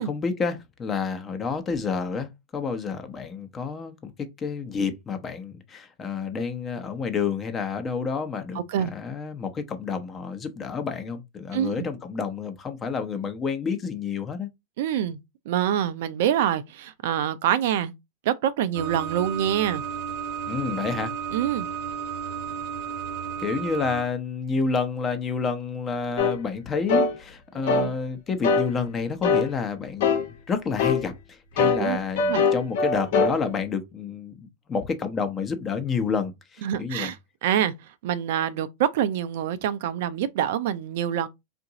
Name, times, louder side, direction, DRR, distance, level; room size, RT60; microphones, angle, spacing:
voice 1, 0.0-4.1 4.4-14.5 20.5-21.1 23.4-37.1, left 5 dB, 25° left, 0.8 m, -29 dB
voice 2, 8.5-8.9 11.5-11.9 14.8-15.2 15.5-17.9 18.2-19.8 21.3-21.7 27.6-27.9 31.8-32.0 32.3-32.4 36.6-41.3, right 10 dB, 65° right, 0.4 m, -26 dB
sound 1, 18.7-24.0, right 7 dB, 50° right, 0.8 m, -33 dB
sound 2, 26.2-26.4 26.9-27.1 27.7-27.9 28.4-28.7 29.2-29.5 30.0-30.3 30.8-31.0 31.6-33.4, left 4 dB, 65° left, 0.8 m, -22 dB
3.7 x 2.5 x 2.8 m
hypercardioid pair, 105°, 0 cm